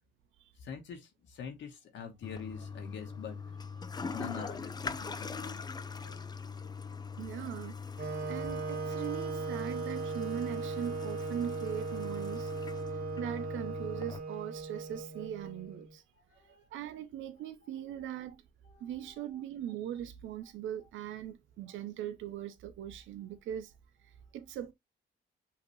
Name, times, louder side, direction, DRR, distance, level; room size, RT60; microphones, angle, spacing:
voice 1, 0.6-3.4 4.1-5.6 16.3-16.6 18.7-19.4 21.7-21.8, left 7 dB, 70° left, 1.2 m, -45 dB
Toilet flush, 2.2-14.2, left 5 dB, 20° left, 0.4 m, -42 dB
voice 2, 7.2-7.8 8.3-12.8 13.2-16.0 16.4-18.4 18.8-23.7 24.0-24.7, right 10 dB, 80° right, 0.7 m, -40 dB
Wind instrument woodwind instrument, 8.0-15.9, right 4 dB, 50° right, 2.0 m, -38 dB
5.7 x 2.9 x 3.0 m
cardioid pair, 90°, 20 cm